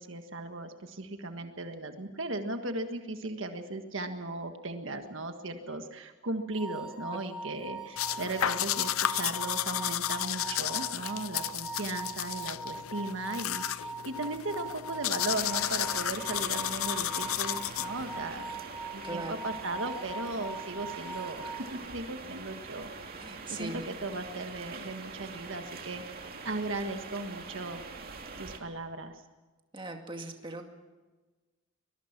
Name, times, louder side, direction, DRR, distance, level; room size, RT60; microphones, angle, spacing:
voice 1, 0.0-18.6 18.9-22.9 23.5-27.8 28.4-29.2, right 2 dB, 65° right, 6 dB, 1.6 m, -37 dB
sound 1, 6.5-21.7, right 2 dB, 5° right, 1.3 m, -41 dB
sound 2, 8.0-18.2, left 12 dB, 90° left, 0.6 m, -33 dB
sound 3, 15.3-28.6, right 4 dB, 45° right, 2.6 m, -44 dB
voice 2, 19.0-19.4 23.2-23.9 29.7-30.7, right 2 dB, 25° right, 3 dB, 2.3 m, -39 dB
24.0 x 21.0 x 6.0 m, 1.3 s
head